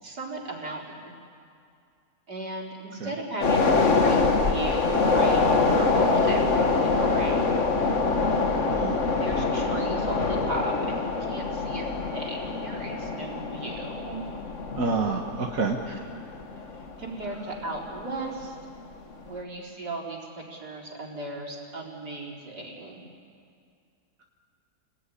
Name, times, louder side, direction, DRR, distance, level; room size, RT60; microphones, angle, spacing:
voice 1, 0.0-1.1 2.3-7.6 9.2-11.9 12.1-14.3 15.9-16.0 17.0-18.6 19.2-23.0, right 2 dB, 75° right, -2 dB, 4.8 m, -36 dB
sound 1, 3.4-18.0 18.3-18.5, left 4 dB, 50° left, 1.8 m, -25 dB
voice 2, 14.8-15.8, right 4 dB, 55° right, 1 dB, 1.9 m, -27 dB
29.0 x 20.0 x 10.0 m, 2.4 s
omnidirectional pair, 1.7 m